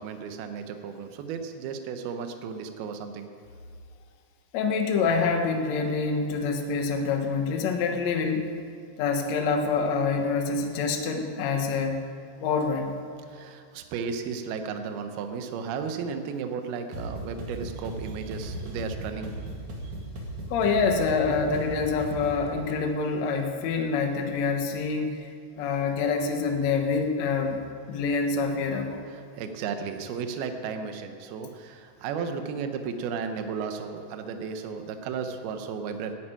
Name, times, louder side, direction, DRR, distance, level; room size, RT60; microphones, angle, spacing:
voice 1, 0.0-3.3 13.3-19.3 19.8-19.9 29.1-36.1, right 6 dB, 70° right, 6 dB, 2.7 m, -34 dB
voice 2, 4.5-8.5 9.0-12.0 12.4-12.9 20.5-25.3 25.6-27.6 27.9-29.0, left 4 dB, 80° left, 4 dB, 1.5 m, -26 dB
sound 1, 16.9-22.5, right 1 dB, 50° right, 3.1 m, -37 dB
13.0 x 9.3 x 9.0 m, 2.4 s
omnidirectional pair, 5.0 m